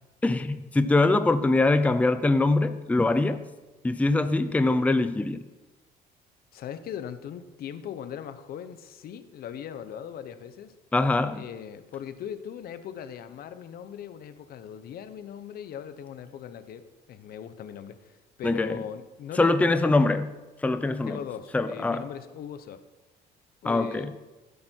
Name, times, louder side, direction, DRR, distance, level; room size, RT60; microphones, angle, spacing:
voice 1, 0.2-3.4 3.8-5.4 10.9-11.4 18.4-18.8 19.4-20.3 20.6-21.2 21.5-22.1 23.6-24.1, left 2 dB, 10° left, 11 dB, 0.6 m, -23 dB
voice 2, 6.5-10.7 11.3-20.0 21.0-22.8 23.6-24.1, left 9 dB, 65° left, 11 dB, 0.9 m, -39 dB
15.5 x 8.5 x 4.5 m, 1.1 s
cardioid pair, 110°, 17 cm